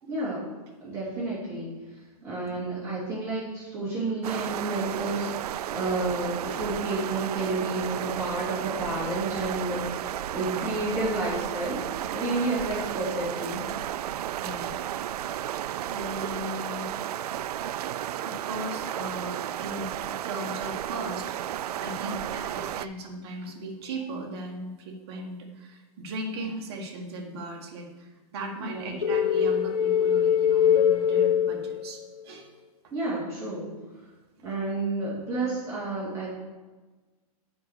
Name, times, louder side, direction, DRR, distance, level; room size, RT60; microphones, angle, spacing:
voice 1, 0.1-0.4 0.8-1.7 2.2-11.8 12.1-13.6 22.0-22.2 28.6-29.0 32.9-33.7 34.4-36.3, right 2 dB, 15° right, -9 dB, 3.0 m, -31 dB
sound 1, 4.2-22.9, right 11 dB, 85° right, 0.4 m, -33 dB
voice 2, 14.4-14.8 15.9-16.9 18.2-21.3 21.7-32.5, right 1 dB, 40° right, 1 dB, 1.6 m, -38 dB
sound 2, 29.0-32.2, left 8 dB, 75° left, 1.2 m, -23 dB
8.1 x 5.4 x 6.6 m, 1.3 s
hypercardioid pair, 170°, 20 cm